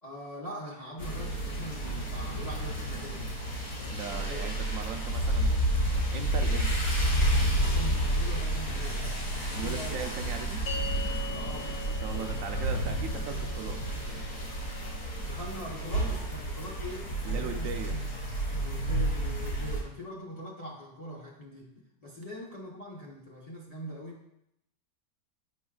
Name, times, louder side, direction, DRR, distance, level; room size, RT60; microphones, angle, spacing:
voice 1, 0.0-3.4 3.7-4.7 7.6-9.2 9.6-10.0 11.3-11.7 12.0-12.6 15.2-18.0 18.6-24.2, equal, 30° left, -3 dB, 0.7 m, -42 dB
sound 1, 1.0-19.8, right 1 dB, 65° left, 2.4 m, -30 dB
voice 2, 3.9-6.9 9.5-10.8 11.8-13.8 17.2-18.0, right 6 dB, 70° right, 6 dB, 0.9 m, -39 dB
sound 2, 10.7-17.2, left 3 dB, 90° left, 0.4 m, -44 dB
8.4 x 5.6 x 2.3 m, 0.78 s
omnidirectional pair, 1.7 m